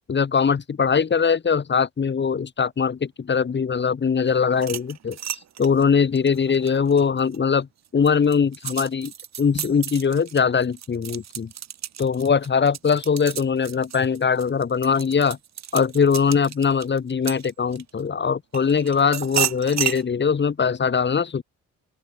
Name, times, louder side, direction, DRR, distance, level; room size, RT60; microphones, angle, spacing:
voice 1, 0.1-7.7 7.9-9.1 9.4-11.5 12.0-15.4 15.7-21.4, left 6 dB, 35° left, 2.3 m, -21 dB
sound 1, 4.5-7.4 7.8-18.0 18.5-20.0, right 10 dB, 60° right, 3.3 m, -32 dB
open air
cardioid pair, 90°, 30 cm